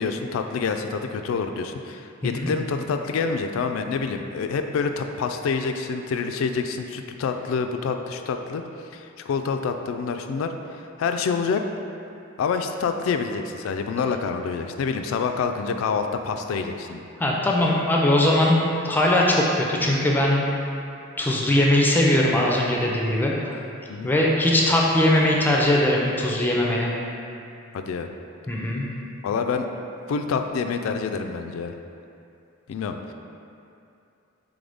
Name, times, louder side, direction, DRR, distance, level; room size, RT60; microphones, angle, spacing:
voice 1, 0.0-8.6 8.9-11.6 12.4-17.0 23.9-24.1 27.7-28.1 29.2-29.6 30.1-31.7 32.7-33.1, left 5 dB, 75° left, 7 dB, 0.3 m, -27 dB
voice 2, 17.2-18.6 18.8-20.5 21.2-23.6 24.0-26.9 28.5-28.9, left 1 dB, 10° left, -3 dB, 0.4 m, -20 dB
3.9 x 3.5 x 3.4 m, 2.6 s
head